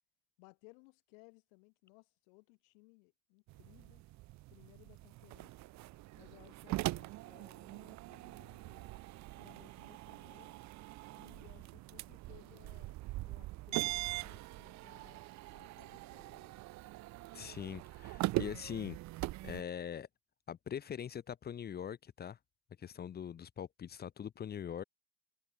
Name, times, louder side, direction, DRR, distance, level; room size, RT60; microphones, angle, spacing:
voice 1, 0.4-4.0 4.5-5.6 6.2-8.9 9.4-10.6 11.1-16.5, left 33 dB, 80° left, 4.0 m, -62 dB
sound 1, 3.5-19.6, right 18 dB, 45° right, 0.9 m, -42 dB
voice 2, 17.3-19.0 19.4-20.1 20.5-22.4 22.8-24.8, left 8 dB, 25° left, 1.1 m, -42 dB
cardioid pair, 150°, 41 cm